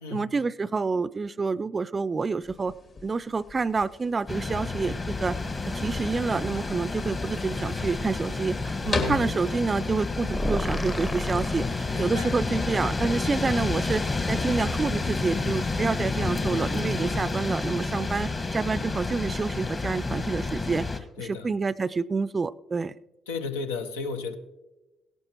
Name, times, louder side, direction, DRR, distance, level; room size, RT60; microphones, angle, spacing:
voice 1, 0.1-2.7 3.0-5.4 5.7-14.0 14.3-20.9 21.2-23.0, right 4 dB, 35° right, 18 dB, 0.4 m, -28 dB
sound 1, 2.4-19.4, left 3 dB, 55° left, 2.3 m, -40 dB
Windy night trees rustling heavy, 4.3-21.0, left 3 dB, 35° left, 1.4 m, -30 dB
voice 2, 8.8-9.3 11.9-12.4 21.2-21.5 23.3-24.4, left 4 dB, 90° left, 6 dB, 0.7 m, -34 dB
sound 2, 10.3-12.4, left 1 dB, 20° left, 0.8 m, -32 dB
17.0 x 11.5 x 2.9 m, 1.1 s
hypercardioid pair, 50°, 0 cm